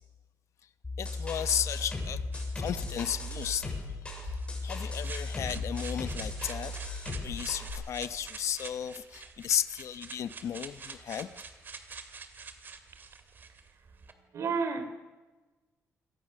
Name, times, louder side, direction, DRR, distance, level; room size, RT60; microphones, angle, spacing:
sound 1, 0.8-7.7, left 2 dB, 20° left, 7.2 m, -36 dB
voice 1, 1.0-2.2 2.5-3.7 4.6-11.3, left 9 dB, 65° left, 1.1 m, -34 dB
sound 2, 2.3-14.1, right 5 dB, 40° right, 2.5 m, -47 dB
voice 2, 14.1-14.8, right 5 dB, 60° right, 3.3 m, -31 dB
27.5 x 24.5 x 6.6 m
wide cardioid pair, 150°, 5 cm